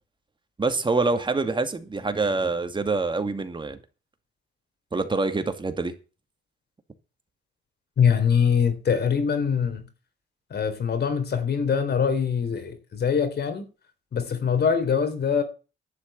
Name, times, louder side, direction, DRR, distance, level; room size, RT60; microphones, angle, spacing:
voice 1, 0.6-3.8 4.9-5.9, right 3 dB, 25° right, 2.3 m, -25 dB
voice 2, 8.0-9.8 10.5-13.7 14.1-15.4, left 7 dB, 55° left, 4.1 m, -23 dB
11.5 x 6.7 x 8.8 m
cardioid pair, 90°, 20 cm